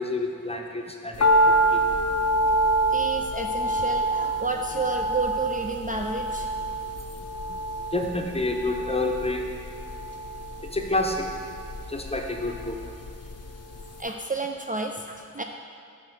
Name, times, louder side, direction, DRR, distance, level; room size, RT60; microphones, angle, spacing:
voice 1, 0.0-1.8 7.9-9.4 10.7-11.2 11.9-12.8, left 2 dB, 20° left, 2 dB, 0.8 m, -28 dB
sound 1, 1.2-13.5 13.7-13.8, right 1 dB, 50° left, 0.6 m, -26 dB
voice 2, 2.9-6.5 14.0-15.4, right 3 dB, 25° right, 3 dB, 0.4 m, -30 dB
5.9 x 4.3 x 6.1 m, 2.5 s
cardioid pair, 40°, 32 cm